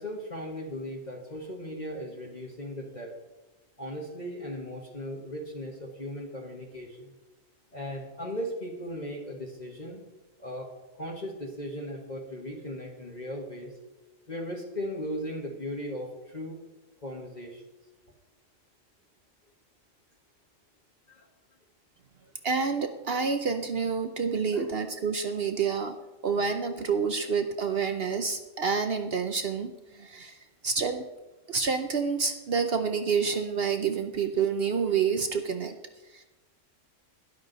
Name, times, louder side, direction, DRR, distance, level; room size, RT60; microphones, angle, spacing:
voice 1, 0.0-3.1 3.8-7.1 7.7-10.0 10.4-10.7 11.0-13.7 14.3-16.6 17.0-17.6 21.1-21.3 24.5-24.7, equal, 35° left, -1 dB, 1.6 m, -37 dB
voice 2, 22.4-26.0 26.2-30.4 30.6-31.0 31.5-35.8 36.1-36.2, right 5 dB, 55° right, 7 dB, 0.9 m, -28 dB
12.0 x 11.0 x 4.0 m, 1.1 s
omnidirectional pair, 1.4 m